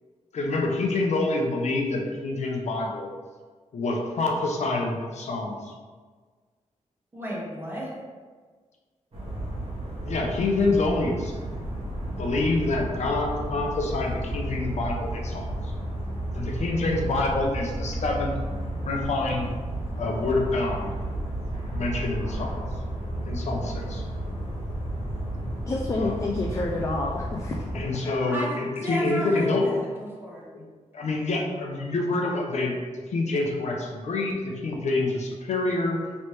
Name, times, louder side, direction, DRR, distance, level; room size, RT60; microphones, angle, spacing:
voice 1, 0.3-3.1 3.7-5.7 10.1-11.3 12.2-15.7 16.3-18.4 18.8-19.5 20.0-20.9 21.7-22.6 23.3-24.0 25.9-26.2 27.7-29.6 30.5-30.6 30.9-36.0, left 2 dB, 65° left, 0 dB, 0.6 m, -27 dB
voice 2, 7.1-8.0 28.3-30.5, equal, 15° right, -5 dB, 1.0 m, -33 dB
sound 1, 9.1-27.9, right 1 dB, 50° right, 1.3 m, -32 dB
voice 3, 25.7-27.6 28.0-28.5, left 2 dB, 25° left, -1 dB, 0.3 m, -29 dB
3.2 x 3.1 x 4.4 m, 1.5 s
wide cardioid pair, 165°, 13 cm